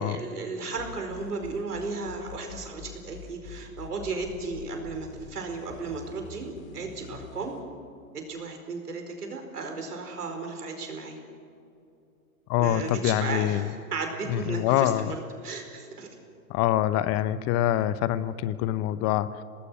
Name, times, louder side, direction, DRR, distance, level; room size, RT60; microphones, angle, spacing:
voice 1, 0.0-7.5 8.1-11.2 12.6-16.2, right 4 dB, 90° right, 4 dB, 4.8 m, -35 dB
sound 1, 0.8-7.6, left 6 dB, 50° left, 4.0 m, -45 dB
voice 2, 12.5-13.7 14.3-15.2 16.5-19.3, left 12 dB, 35° left, 15 dB, 0.8 m, -25 dB
26.5 x 19.0 x 6.3 m, 2.6 s
hypercardioid pair, 115°, 45 cm